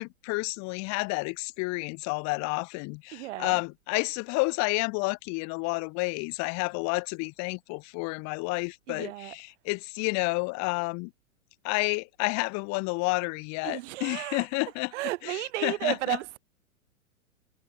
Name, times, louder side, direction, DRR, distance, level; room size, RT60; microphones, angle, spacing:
voice 1, 0.0-11.1 11.6-14.9 15.3-16.2, left 29 dB, 40° left, 2.8 m, -30 dB
voice 2, 3.1-3.6 8.9-9.4 13.6-14.5 14.9-16.4, right 17 dB, 55° right, 3.0 m, -33 dB
hypercardioid pair, 120°, 43 cm